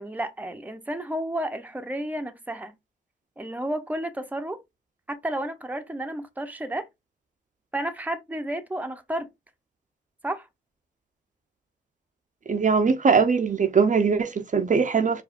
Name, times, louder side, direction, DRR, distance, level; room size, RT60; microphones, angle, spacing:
voice 1, 0.0-2.7 3.4-4.6 5.1-6.9 7.7-9.3 10.2-10.5, right 1 dB, 10° right, 0.8 m, -31 dB
voice 2, 12.5-15.2, right 5 dB, 45° right, 0.6 m, -21 dB
4.8 x 2.6 x 2.5 m
cardioid pair, 55°, 18 cm